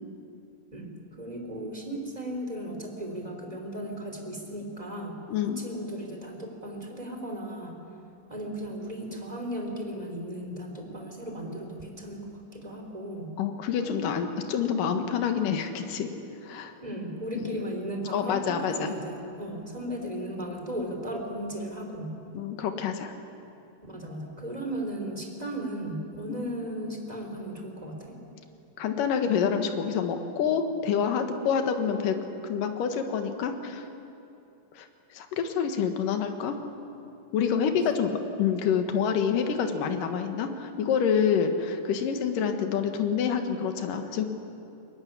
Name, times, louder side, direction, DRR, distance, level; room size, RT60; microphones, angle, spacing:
voice 1, 0.7-5.1 5.6-7.7 8.3-13.3 16.8-22.2 23.8-28.2 37.5-38.0, right 1 dB, 10° right, 1 dB, 3.4 m, -36 dB
voice 2, 5.3-5.6 13.4-16.1 16.4-16.7 17.3-17.6 18.1-18.9 22.3-23.1 28.8-32.2 32.4-33.9 34.7-36.6 37.3-38.1 38.4-44.2, left 7 dB, 75° left, 6 dB, 3.1 m, -27 dB
22.5 x 20.5 x 9.9 m, 2.8 s
omnidirectional pair, 4.0 m